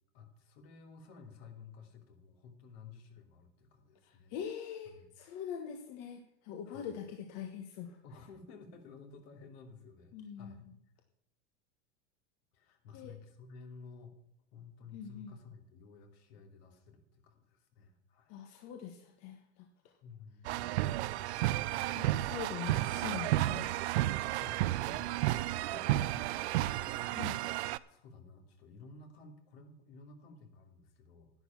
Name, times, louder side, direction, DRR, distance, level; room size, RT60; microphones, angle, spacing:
voice 1, 0.1-4.3 4.8-5.1 6.7-6.9 8.0-10.7 12.5-14.1 14.5-18.4 20.0-20.7 24.4-25.2 25.7-27.5 27.9-31.3, left 4 dB, 60° left, 4 dB, 2.9 m, -53 dB
voice 2, 4.0-8.0 10.1-10.6 12.9-13.1 14.9-15.3 18.3-19.7 21.9-23.7 27.1-27.4, left 8 dB, 45° left, 4 dB, 1.5 m, -43 dB
sound 1, 20.5-27.8, right 15 dB, 70° right, 0.6 m, -32 dB
11.0 x 9.8 x 5.9 m, 0.78 s
supercardioid pair, 125°, 35 cm